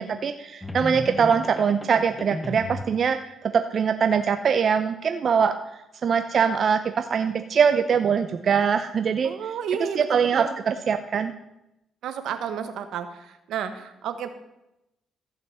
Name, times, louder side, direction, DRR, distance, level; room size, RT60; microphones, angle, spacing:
voice 1, 0.0-5.6 6.0-9.6 9.9-11.3, right 6 dB, 50° right, 8 dB, 0.6 m, -23 dB
sound 1, 0.6-3.0, left 1 dB, 10° left, 1.1 m, -34 dB
voice 2, 9.2-10.5 12.0-13.1 13.5-14.3, right 8 dB, 80° right, 9 dB, 1.2 m, -31 dB
14.5 x 5.9 x 7.1 m, 0.90 s
cardioid pair, 90°, 0 cm